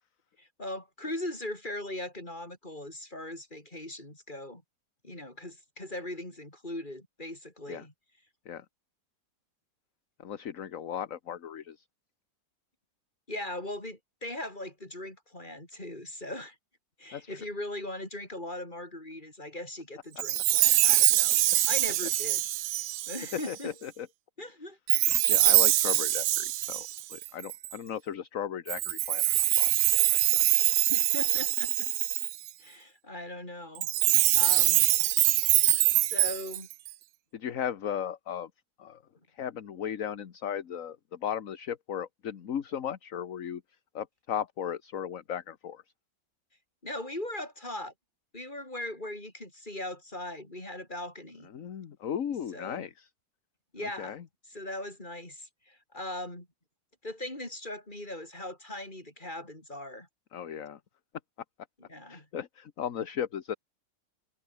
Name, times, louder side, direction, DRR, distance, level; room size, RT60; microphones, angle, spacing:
voice 1, 0.4-4.6 5.0-7.9 13.3-16.6 17.0-22.4 23.1-23.7 24.4-24.8 30.9-31.9 32.6-33.9 34.3-34.8 35.9-36.7 46.8-47.9 48.3-51.5 52.5-52.9 53.7-54.2 54.5-56.5 57.0-60.1 61.8-62.3, left 1 dB, 25° left, 6.4 m, -39 dB
voice 2, 10.2-11.8 17.1-17.4 23.5-24.1 25.3-30.4 37.3-38.5 38.8-39.0 39.3-43.6 43.9-45.8 51.5-53.1 53.8-54.2 60.3-60.8 62.1-63.5, left 9 dB, 50° left, 1.4 m, -36 dB
Chime, 20.2-23.5 24.9-27.7 28.7-32.5 33.8-36.9, right 15 dB, 75° right, 1.4 m, -24 dB
omnidirectional pair, 2.1 m